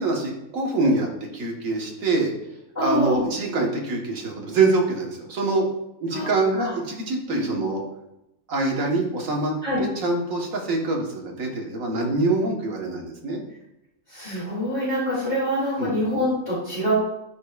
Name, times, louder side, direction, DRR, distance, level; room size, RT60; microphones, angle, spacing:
voice 1, 0.0-2.3 2.8-5.6 6.0-7.8 8.5-9.5 9.8-13.4 15.8-15.9, right 3 dB, 65° right, 0 dB, 1.6 m, -25 dB
voice 2, 2.7-3.2 6.1-6.7 7.3-7.6 9.6-9.8 14.1-16.9, equal, 30° left, -11 dB, 2.8 m, -25 dB
10.0 x 5.2 x 2.3 m, 0.86 s
omnidirectional pair, 1.5 m